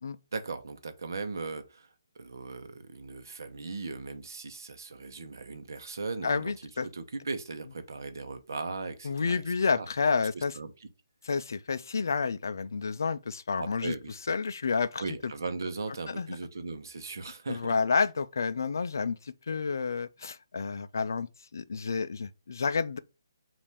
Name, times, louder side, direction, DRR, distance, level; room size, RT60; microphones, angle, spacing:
voice 1, 0.3-6.5 6.8-9.4 9.7-9.9 10.3-10.9 13.6-14.1 15.0-17.7, right 4 dB, 60° right, 0.8 m, -38 dB
voice 2, 6.2-6.9 9.0-10.5 11.2-13.9 14.3-15.0 16.1-16.3 17.5-23.0, left 5 dB, 55° left, 0.4 m, -30 dB
5.3 x 2.5 x 3.4 m
hypercardioid pair, 180°, 2 cm